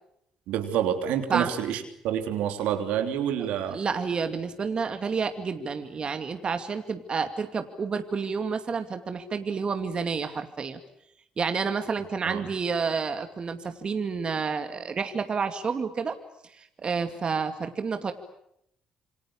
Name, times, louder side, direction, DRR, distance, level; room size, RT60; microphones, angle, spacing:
voice 1, 0.5-3.8 12.2-12.4, right 10 dB, 80° right, 6 dB, 3.4 m, -28 dB
voice 2, 3.7-10.8 11.4-16.2 16.6-18.1, right 5 dB, 45° right, 7 dB, 2.4 m, -29 dB
27.5 x 24.5 x 8.7 m, 0.76 s
hypercardioid pair, 55°, 2 cm